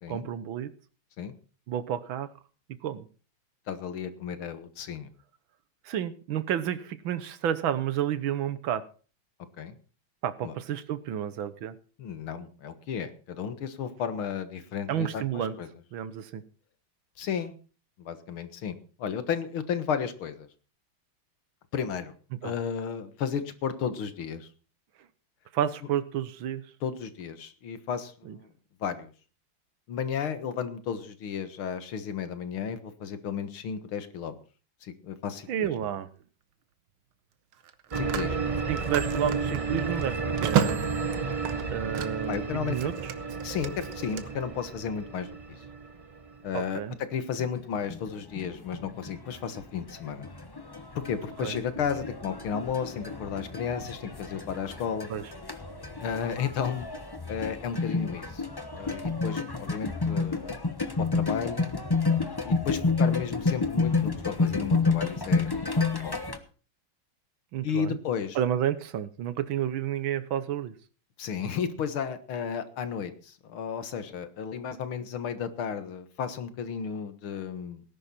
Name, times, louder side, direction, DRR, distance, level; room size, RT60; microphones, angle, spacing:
voice 1, 0.1-0.7 1.7-2.3 2.8-3.1 5.9-8.8 10.2-11.8 14.9-15.6 15.9-16.4 22.4-22.5 25.5-26.6 28.3-28.4 35.5-36.1 38.7-40.1 40.4-41.0 41.7-43.0 46.5-46.9 51.4-51.6 55.1-55.2 67.5-68.0 68.4-70.7, right 10 dB, 75° right, 14 dB, 1.7 m, -30 dB
voice 2, 3.7-5.1 9.6-9.7 10.4-10.5 12.0-15.7 17.2-17.5 18.0-20.5 21.7-22.1 22.4-24.5 26.8-28.5 28.8-29.1 29.9-34.3 34.8-35.7 37.9-38.5 42.3-42.8 43.4-45.3 46.4-46.8 47.1-50.3 51.0-55.1 56.0-56.9 57.3-58.4 58.7-60.5 61.0-61.7 62.4-66.1 67.6-68.4 71.2-77.8, left 7 dB, 80° left, 11 dB, 2.3 m, -33 dB
Telephone, 35.3-35.6 37.5-42.4 42.7-44.2, right 9 dB, 90° right, 2.0 m, -33 dB
sound 1, 37.9-46.8, right 4 dB, 30° right, 0.6 m, -32 dB
sound 2, 47.4-47.6 47.9-66.4, left 4 dB, 15° left, 0.8 m, -30 dB
18.5 x 11.0 x 4.3 m, 0.37 s
omnidirectional pair, 2.3 m